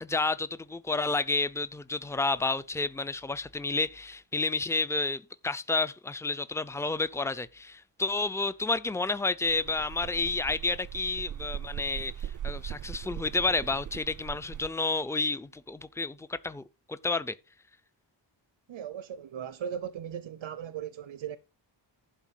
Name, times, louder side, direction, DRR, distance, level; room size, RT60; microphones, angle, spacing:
voice 1, 0.0-16.6 16.9-17.4, left 3 dB, 5° left, 0.6 m, -30 dB
sound 1, 9.4-14.7, right 10 dB, 45° right, 0.4 m, -40 dB
voice 2, 18.7-21.4, right 9 dB, 90° right, 0.8 m, -38 dB
11.5 x 4.4 x 7.5 m
wide cardioid pair, 105°, 44 cm